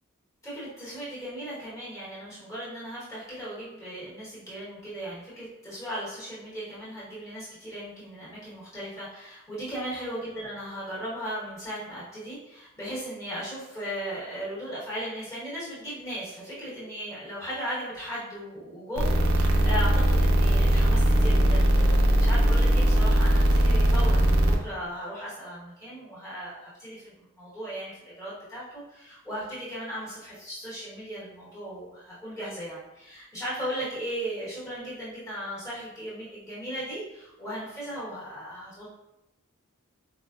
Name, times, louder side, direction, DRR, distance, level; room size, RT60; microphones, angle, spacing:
voice 1, 0.4-38.9, equal, 15° left, -10 dB, 1.0 m, -37 dB
sound 1, 19.0-24.5, right 1 dB, 75° right, 0.5 m, -20 dB
4.2 x 2.1 x 2.3 m, 0.90 s
head